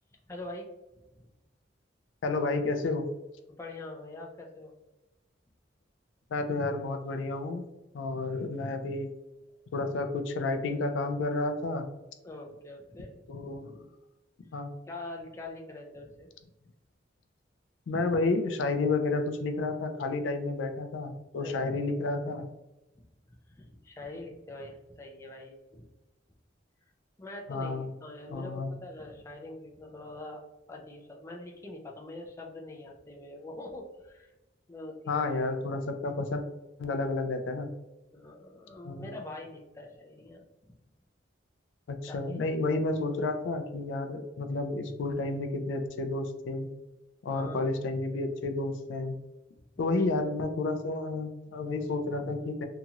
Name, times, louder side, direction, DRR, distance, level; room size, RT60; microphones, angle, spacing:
voice 1, 0.3-0.7 3.6-4.7 12.2-13.4 14.9-16.3 21.4-21.7 23.6-25.8 27.2-30.4 30.7-34.3 34.7-35.3 38.1-40.4 42.1-42.4 47.3-47.6 49.9-50.1, left 2 dB, 15° left, 0 dB, 0.4 m, -44 dB
voice 2, 2.2-3.1 6.3-7.7 7.9-9.1 9.7-11.9 13.3-13.8 14.5-14.7 17.9-22.5 27.5-27.9 28.3-28.7 35.1-36.4 36.8-37.7 38.8-39.1 41.9-46.7 47.2-49.2 49.8-52.7, left 3 dB, 85° left, 7 dB, 0.4 m, -31 dB
2.8 x 2.8 x 2.3 m, 1.0 s
head